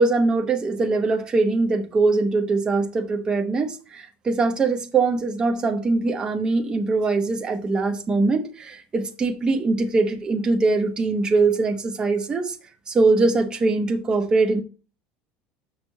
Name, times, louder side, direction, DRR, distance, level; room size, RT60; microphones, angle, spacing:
voice 1, 0.0-12.5 12.9-14.6, right 3 dB, 20° right, 0.9 m, -22 dB
6.4 x 6.0 x 4.0 m
cardioid pair, 160°, 4 cm